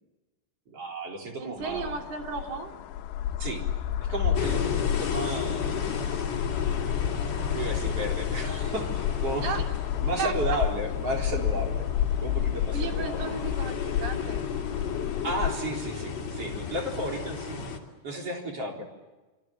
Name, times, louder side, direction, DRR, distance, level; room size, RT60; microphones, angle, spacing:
voice 1, 0.7-1.9 3.4-3.7 4.0-6.3 7.5-9.5 10.0-11.9 12.2-13.4 15.2-17.7 18.0-18.8, right 1 dB, 35° right, 1 dB, 4.7 m, -33 dB
voice 2, 1.4-2.7 9.4-9.7 10.2-10.6 12.7-14.5, right 5 dB, 65° right, 3 dB, 5.0 m, -34 dB
sound 1, 1.6-15.5, left 11 dB, 80° left, 3.1 m, -30 dB
sound 2, 4.3-17.8, left 6 dB, 40° left, 3.8 m, -33 dB
26.0 x 25.5 x 7.7 m, 1.2 s
omnidirectional pair, 4.9 m